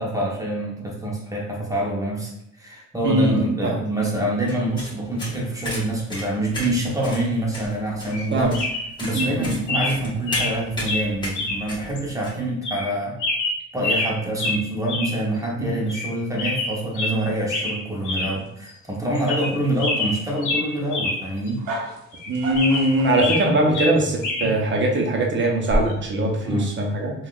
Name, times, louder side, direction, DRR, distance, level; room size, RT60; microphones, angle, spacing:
voice 1, 0.0-2.3 2.6-8.5 9.0-13.2 13.7-21.6 24.4-24.5 26.4-26.7, right 1 dB, 10° right, -3 dB, 0.8 m, -26 dB
voice 2, 3.0-3.8 8.3-8.6 9.1-9.5 15.6-15.7 22.3-27.1, right 1 dB, 40° right, 0 dB, 0.8 m, -21 dB
sound 1, 4.5-12.3, left 1 dB, 15° left, 1.2 m, -34 dB
sound 2, 8.1-8.3 8.5-8.9 9.1-9.3 9.7-10.0 10.3-10.6 10.9-11.0 11.4-11.6 12.0-12.1 12.6-12.9 13.2-14.1 14.4-14.6 14.9-15.1 15.4-15.5 15.9-16.1 16.4-17.2 17.5-17.8 18.0-18.3 18.7-18.8 19.2-19.5 19.8-21.2 21.5-21.6 22.1-23.5 23.7-24.5 25.7-25.9, left 2 dB, 85° left, 0.8 m, -26 dB
sound 3, 15.9-23.3, right 2 dB, 75° right, 0.9 m, -38 dB
3.4 x 2.5 x 2.4 m, 0.77 s
cardioid pair, 90°, 30 cm